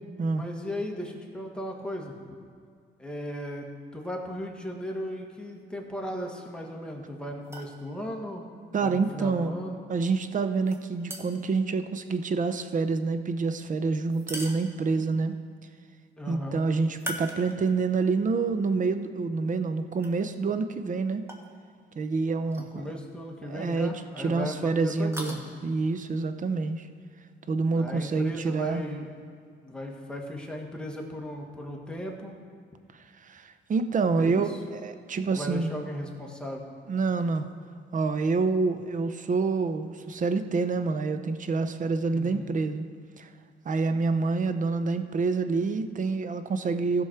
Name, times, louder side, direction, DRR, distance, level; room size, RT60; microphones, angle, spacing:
voice 1, 0.3-2.2 3.0-8.5 8.8-9.8 16.2-16.6 22.6-25.4 27.7-29.1 29.6-32.4 34.1-34.6 35.3-36.7 42.1-42.6, equal, 5° left, 0 dB, 1.7 m, -36 dB
sound 1, 7.4-7.8 10.7-11.5 14.1-15.1 16.9-17.9 18.4-18.5 20.0-20.1 21.3-21.5 22.5-22.7 23.0-23.1 24.9-25.4, right 1 dB, 10° right, 1.4 m, -39 dB
voice 2, 8.7-9.5 9.9-15.4 16.3-21.2 22.0-22.9 23.5-23.9 24.2-26.9 27.5-28.8 33.3-35.7 36.9-37.5 37.9-42.9 43.2-43.3 43.6-47.0, right 4 dB, 40° right, 10 dB, 0.7 m, -27 dB
15.5 x 6.2 x 4.5 m, 2.1 s
cardioid pair, 90°, 20 cm